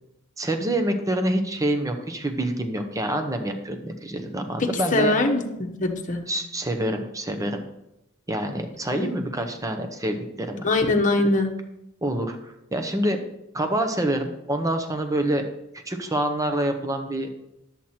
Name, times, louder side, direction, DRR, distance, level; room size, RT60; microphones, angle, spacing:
voice 1, 0.4-5.1 6.3-7.6 8.3-10.7 12.0-13.2 13.5-15.5 15.9-17.3, right 1 dB, 15° right, 6 dB, 0.8 m, -26 dB
voice 2, 4.6-6.2 8.9-9.3 10.6-11.5, left 2 dB, 35° left, 2 dB, 1.1 m, -23 dB
10.0 x 7.5 x 4.3 m, 0.86 s
head